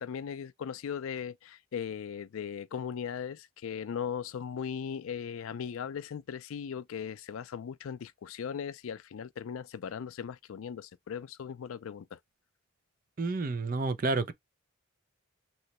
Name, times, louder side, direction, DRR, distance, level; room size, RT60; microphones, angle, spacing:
voice 1, 0.0-12.2, left 7 dB, 75° left, 0.4 m, -38 dB
voice 2, 13.2-14.3, right 3 dB, 40° right, 0.5 m, -30 dB
3.1 x 3.0 x 2.8 m
head